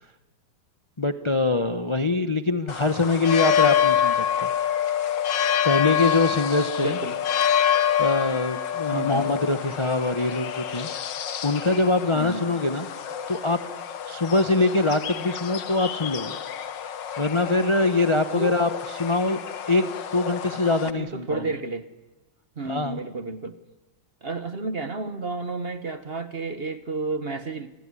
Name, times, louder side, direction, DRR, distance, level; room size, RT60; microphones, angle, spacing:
voice 1, 1.0-4.5 5.6-7.0 8.0-10.9 11.4-12.9 13.3-13.6 14.1-16.4 17.2-19.4 19.7-21.5 22.7-23.0, left 3 dB, 25° left, 0.6 m, -23 dB
sound 1, 2.7-20.9, left 9 dB, 75° left, 1.9 m, -27 dB
voice 2, 6.8-7.2 8.9-9.3 12.1-12.5 18.3-18.6 20.7-21.9 22.6-23.6 24.2-27.7, right 3 dB, 35° right, 1.2 m, -31 dB
29.0 x 21.0 x 9.8 m
omnidirectional pair, 2.0 m